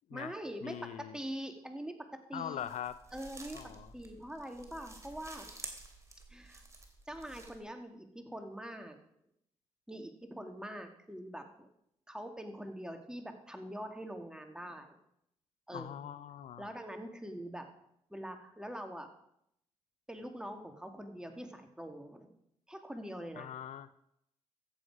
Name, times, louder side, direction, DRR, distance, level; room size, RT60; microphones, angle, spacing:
voice 1, 0.1-1.9 2.3-2.7 3.1-5.5 6.3-6.6 7.1-9.0 9.9-11.7 12.1-15.0 15.7-16.0 16.6-17.7 18.1-19.1 20.1-22.3 22.7-23.6, equal, 5° right, 4 dB, 2.3 m, -44 dB
voice 2, 0.6-1.1 2.3-2.9 3.5-3.9 15.7-16.7 23.4-24.0, left 10 dB, 70° left, 15 dB, 0.5 m, -42 dB
sound 1, 2.6-7.6, right 2 dB, 25° right, 3.0 m, -51 dB
14.0 x 8.1 x 4.9 m, 0.75 s
supercardioid pair, 55°, 13 cm